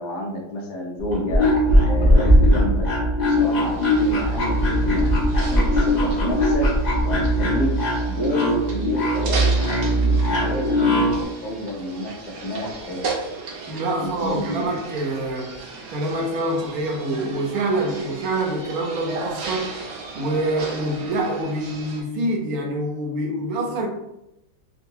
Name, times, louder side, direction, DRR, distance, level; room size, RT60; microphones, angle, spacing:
voice 1, 0.0-1.5 1.9-2.9 3.2-6.7 7.0-7.7 8.1-13.0 14.0-14.7, left 1 dB, 70° left, -1 dB, 1.2 m, -30 dB
sound 1, 1.0-11.2, equal, 90° left, 0.4 m, -19 dB
sound 2, 3.3-22.0, right 3 dB, 85° right, 1.4 m, -36 dB
voice 2, 13.6-15.6 15.9-19.8 20.2-23.9, right 1 dB, 65° right, 0 dB, 1.0 m, -26 dB
3.8 x 2.3 x 2.6 m, 0.87 s
omnidirectional pair, 1.9 m